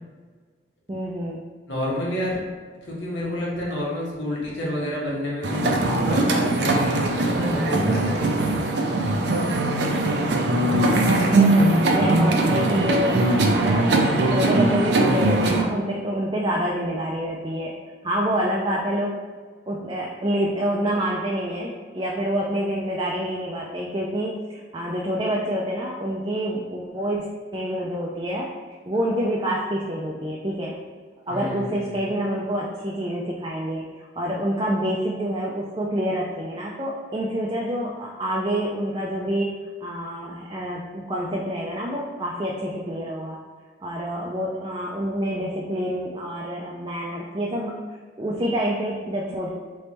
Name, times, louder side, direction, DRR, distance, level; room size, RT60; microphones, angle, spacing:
voice 1, 0.9-1.4 10.8-13.2 13.5-13.9 14.2-17.7 18.0-19.1 19.7-28.5 28.9-30.7 31.3-39.5 39.8-43.4 43.8-47.7 48.2-49.5, equal, 25° right, -3 dB, 0.4 m, -27 dB
voice 2, 1.7-2.4 2.9-8.5 31.3-32.0, left 1 dB, 85° left, -5 dB, 1.4 m, -29 dB
sound 1, 5.4-15.6, right 2 dB, 70° right, 0.5 m, -21 dB
3.4 x 3.1 x 4.3 m, 1.5 s
head